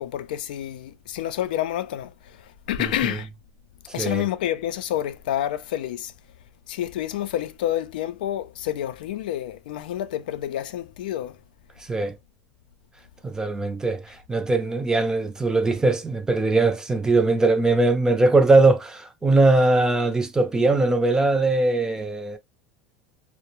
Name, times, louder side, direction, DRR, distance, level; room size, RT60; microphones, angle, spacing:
voice 1, 0.0-3.3 3.9-6.1 6.7-11.4, left 12 dB, 80° left, 0.3 m, -29 dB
voice 2, 13.2-14.0 14.3-22.4, right 2 dB, 15° right, 0.4 m, -20 dB
2.3 x 2.0 x 2.9 m
supercardioid pair, 105°, 5 cm